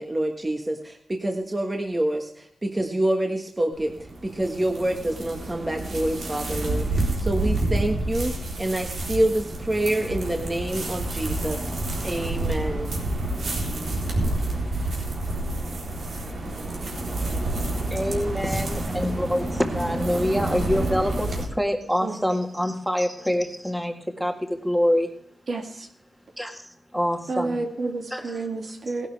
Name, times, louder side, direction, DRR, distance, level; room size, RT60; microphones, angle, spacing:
voice 1, 0.0-3.9 4.2-11.7 12.0-12.9, right 1 dB, 25° right, 2 dB, 1.5 m, -27 dB
sound 1, 3.7-21.5, right 2 dB, 80° right, 3.6 m, -29 dB
voice 2, 16.9-25.1 26.4-27.6 28.1-28.5, equal, 5° right, 3 dB, 1.8 m, -26 dB
voice 3, 25.5-25.9 27.3-29.1, right 3 dB, 65° right, 2 dB, 2.4 m, -30 dB
18.0 x 11.5 x 3.4 m, 0.68 s
wide cardioid pair, 95°, 0 cm